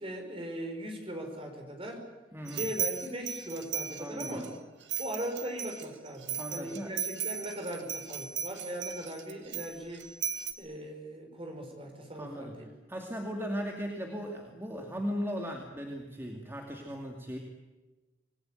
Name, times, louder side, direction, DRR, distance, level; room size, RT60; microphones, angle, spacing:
voice 1, 0.0-2.1 2.5-4.5 5.0-10.0 10.6-12.7, right 1 dB, 30° right, 4 dB, 5.4 m, -39 dB
voice 2, 2.3-2.7 4.0-4.4 6.4-6.9 12.1-12.5 12.9-17.4, equal, 15° right, 1 dB, 2.4 m, -37 dB
sound 1, 2.5-4.5 4.9-10.5, right 9 dB, 85° right, 1.8 m, -37 dB
26.5 x 20.0 x 9.2 m, 1.2 s
head